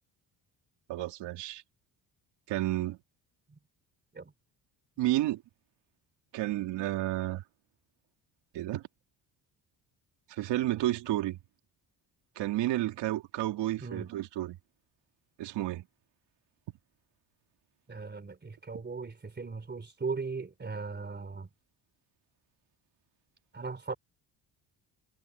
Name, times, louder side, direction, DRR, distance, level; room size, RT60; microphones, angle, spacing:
voice 1, 0.9-1.6 2.5-3.0 5.0-5.4 6.3-7.4 8.5-8.9 10.3-11.4 12.4-14.6 15.4-15.9, right 15 dB, 80° right, 2.5 m, -31 dB
voice 2, 17.9-21.5 23.5-23.9, right 4 dB, 25° right, 3.5 m, -38 dB
cardioid pair, 90°, 42 cm